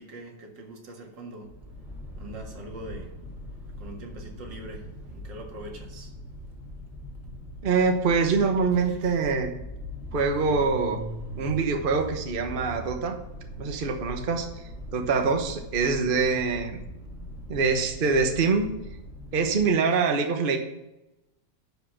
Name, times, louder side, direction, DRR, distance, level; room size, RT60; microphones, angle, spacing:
voice 1, 0.0-1.5 2.2-3.1 3.8-6.1 8.8-9.2 17.3-17.4, right 1 dB, 80° right, 1 dB, 2.4 m, -43 dB
sound 1, 1.4-19.8, left 1 dB, ahead, 2.0 m, -41 dB
voice 2, 7.6-9.5 10.1-11.0 11.4-13.2 13.6-14.5 14.9-16.8 17.5-18.7 19.3-20.6, right 4 dB, 35° right, 5 dB, 1.0 m, -24 dB
11.0 x 5.1 x 5.8 m, 0.94 s
omnidirectional pair, 1.9 m